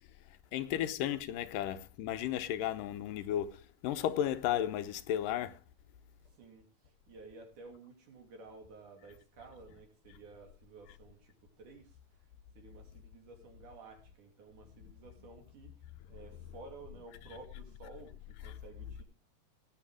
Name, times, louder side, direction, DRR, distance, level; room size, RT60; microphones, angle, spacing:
voice 1, 0.5-5.6, left 11 dB, 80° left, 2.5 m, -34 dB
voice 2, 7.1-11.9 12.6-15.7 16.1-19.0, right 3 dB, 65° right, 4.4 m, -53 dB
18.0 x 7.7 x 4.8 m
omnidirectional pair, 3.8 m